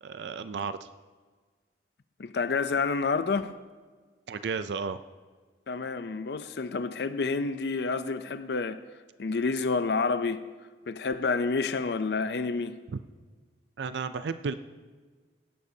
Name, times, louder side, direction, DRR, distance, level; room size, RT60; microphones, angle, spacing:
voice 1, 0.0-0.9 4.3-5.0 13.8-14.5, right 5 dB, 75° right, 0.4 m, -33 dB
voice 2, 2.2-3.6 5.7-8.8 9.2-10.4 10.9-12.8, left 4 dB, 70° left, 0.5 m, -29 dB
18.0 x 12.0 x 2.7 m
head